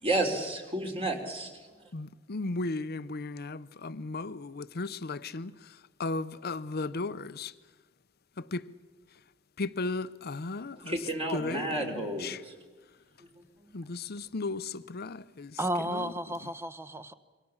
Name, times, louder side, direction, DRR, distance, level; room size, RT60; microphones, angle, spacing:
voice 1, 0.0-1.5 10.8-12.5 13.6-13.7, right 2 dB, 30° right, 3.7 m, -31 dB
voice 2, 1.9-5.5 6.0-7.5 8.4-8.6 9.6-11.0 11.3-12.4 13.7-15.6 15.9-16.1, left 3 dB, 50° left, 0.8 m, -35 dB
voice 3, 15.6-17.1, right 1 dB, 10° right, 1.0 m, -33 dB
27.0 x 24.0 x 7.2 m
head